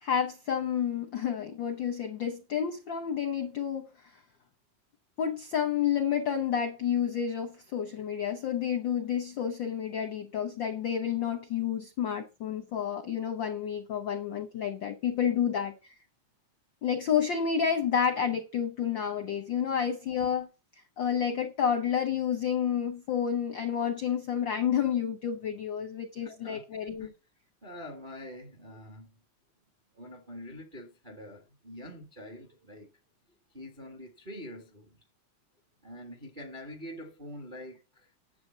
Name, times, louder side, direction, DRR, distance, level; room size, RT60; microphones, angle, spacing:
voice 1, 0.0-4.1 5.2-15.7 16.8-20.5 21.0-27.1, left 8 dB, 70° left, 1.1 m, -30 dB
voice 2, 26.2-26.7 27.0-27.1 27.6-29.2 29.9-32.9 33.5-35.0 35.8-38.1, left 1 dB, 35° right, 0.8 m, -45 dB
9.5 x 7.6 x 5.5 m
omnidirectional pair, 3.4 m